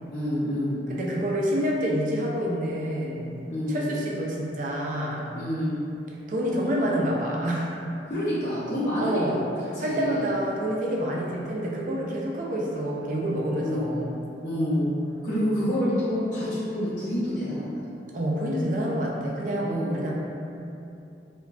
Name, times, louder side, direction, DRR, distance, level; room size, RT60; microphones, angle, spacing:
voice 1, 0.1-0.8 3.5-3.8 5.3-5.8 8.1-9.5 9.7-10.3 13.6-13.9 14.4-14.9 15.2-17.7 19.6-20.0, equal, 50° left, -15 dB, 0.8 m, -28 dB
voice 2, 0.9-3.4 3.7-5.3 6.3-7.7 9.0-14.1 18.1-20.1, equal, 45° right, -2 dB, 0.4 m, -28 dB
3.1 x 2.1 x 2.4 m, 2.7 s
head